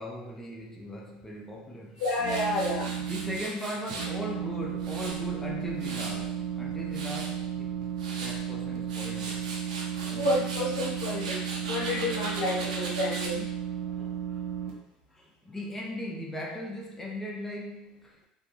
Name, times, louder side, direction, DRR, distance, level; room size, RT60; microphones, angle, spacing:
voice 1, 0.0-2.0 3.0-7.7 8.2-9.7 10.0-10.3 13.9-14.8 15.1-18.3, equal, 10° left, -2 dB, 0.5 m, -39 dB
voice 2, 2.0-2.9 10.1-13.4, left 1 dB, 75° left, -4 dB, 0.8 m, -30 dB
Tools, 2.0-4.1 4.6-6.3 6.7-7.3 7.8-8.4 8.8-13.3, right 3 dB, 80° right, 0.5 m, -39 dB
sound 1, 2.2-3.4 3.9-14.7, right 9 dB, 45° right, 0.8 m, -34 dB
2.5 x 2.2 x 2.8 m, 0.77 s
hypercardioid pair, 70°, 4 cm